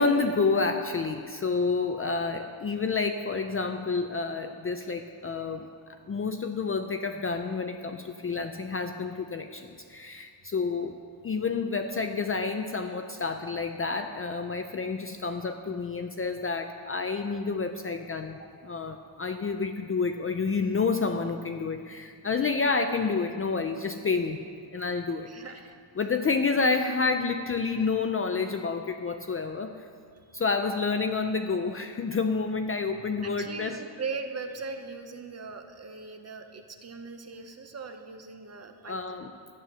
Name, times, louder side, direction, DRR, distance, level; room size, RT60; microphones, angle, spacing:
voice 1, 0.0-10.9 11.2-24.4 24.7-25.3 26.0-29.7 30.3-33.8 38.9-39.3, left 4 dB, 30° left, 6 dB, 0.5 m, -29 dB
voice 2, 25.3-25.8 30.3-30.4 33.2-39.3, right 4 dB, 30° right, 6 dB, 0.9 m, -40 dB
12.5 x 9.2 x 6.9 m, 2.2 s
cardioid pair, 145°, 49 cm